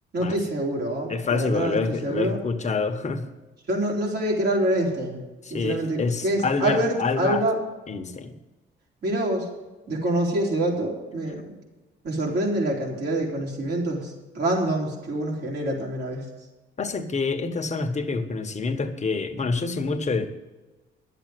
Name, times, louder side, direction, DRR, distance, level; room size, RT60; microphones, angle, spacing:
voice 1, 0.1-2.4 3.7-5.2 5.5-7.6 9.0-9.5 9.9-11.5 12.0-16.3, right 1 dB, 55° right, -1 dB, 3.9 m, -26 dB
voice 2, 1.1-3.3 5.4-7.4 7.9-8.3 16.8-20.3, left 4 dB, 35° left, 6 dB, 1.4 m, -27 dB
11.0 x 7.9 x 7.8 m, 1.1 s
cardioid pair, 90°, 20 cm